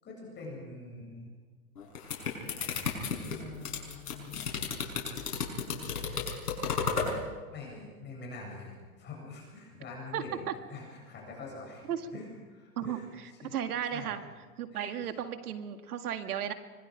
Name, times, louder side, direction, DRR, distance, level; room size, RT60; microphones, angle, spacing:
voice 1, 0.0-1.3 3.2-4.5 6.9-7.2 7.5-11.9 12.1-13.1 13.4-13.5 13.9-14.2 14.7-14.9, left 3 dB, 25° left, -2 dB, 7.9 m, -45 dB
sound 1, 1.7-7.1, left 6 dB, 90° left, 5.8 m, -33 dB
voice 2, 10.1-10.5 11.9-12.1 12.8-14.2 14.6-16.5, right 9 dB, 75° right, 7 dB, 2.1 m, -35 dB
25.5 x 22.0 x 5.2 m, 1.4 s
hypercardioid pair, 130°, 45 cm